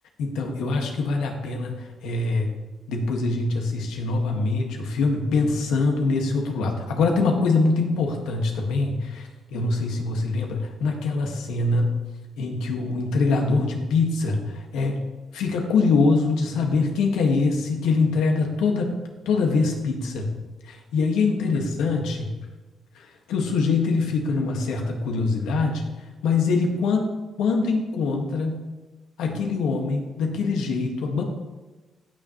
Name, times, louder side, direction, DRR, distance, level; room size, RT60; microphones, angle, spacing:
voice 1, 0.2-2.5 2.9-12.0 12.4-15.0 15.3-19.0 19.3-20.3 20.6-22.3 23.0-25.8 26.2-27.1 27.4-28.7 29.2-31.2, left 3 dB, 85° left, 2 dB, 1.7 m, -24 dB
17.0 x 6.5 x 3.1 m, 1.2 s
cardioid pair, 90°, 0 cm